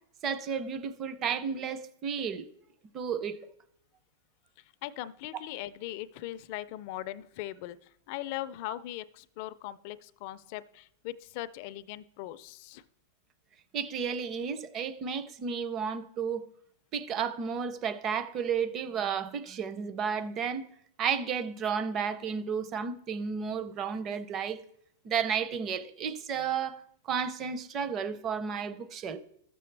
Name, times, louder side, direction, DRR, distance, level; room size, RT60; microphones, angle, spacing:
voice 1, 0.2-2.5 2.9-3.4 13.7-16.4 16.9-20.6 21.0-24.6 25.0-26.8 27.1-29.2, right 7 dB, 25° right, 0.5 m, -32 dB
voice 2, 4.8-12.8, left 15 dB, 40° left, 0.4 m, -40 dB
13.0 x 6.8 x 3.3 m
supercardioid pair, 165°, 0 cm